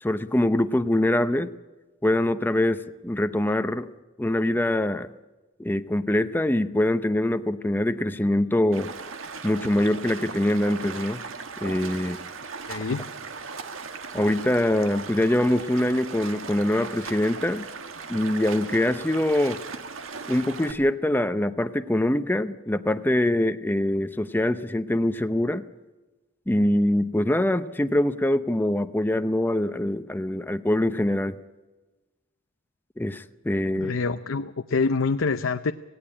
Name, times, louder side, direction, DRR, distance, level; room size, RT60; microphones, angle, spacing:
voice 1, 0.0-1.5 2.0-3.9 4.2-5.1 5.6-8.9 9.4-11.2 11.6-12.2 14.1-17.7 18.1-19.6 20.3-25.6 26.5-31.4 33.0-33.9, left 1 dB, 10° left, 11 dB, 0.6 m, -24 dB
Stream, 8.7-20.7, right 4 dB, 85° right, 1.6 m, -38 dB
voice 2, 12.7-13.1 33.7-35.7, left 4 dB, 75° left, 10 dB, 0.6 m, -26 dB
17.5 x 16.5 x 9.8 m, 1.2 s
head